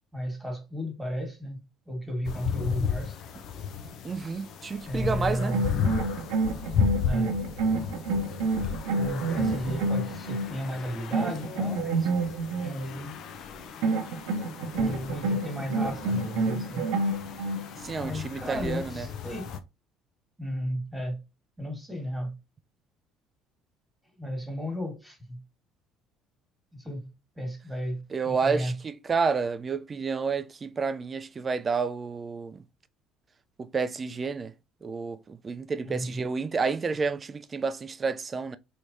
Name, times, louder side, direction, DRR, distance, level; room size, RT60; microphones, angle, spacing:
voice 1, 0.1-3.2 4.9-5.6 7.0-7.4 8.9-12.1 12.6-13.2 14.7-16.8 18.0-19.5 20.4-21.2 21.6-22.4 24.2-25.4 26.7-28.7 35.8-36.2, equal, 5° right, 1.6 m, -34 dB
sound 1, 2.2-19.6, left 7 dB, 60° left, 0.5 m, -35 dB
voice 2, 4.0-5.6 17.8-19.1 28.1-28.7 29.1-32.6 33.6-34.5 34.8-38.6, right 5 dB, 35° right, 0.4 m, -30 dB
sound 2, 5.4-10.6 11.1-12.7 13.8-17.7, right 3 dB, 70° right, 0.7 m, -28 dB
3.2 x 3.1 x 2.6 m
hypercardioid pair, 65°, 0 cm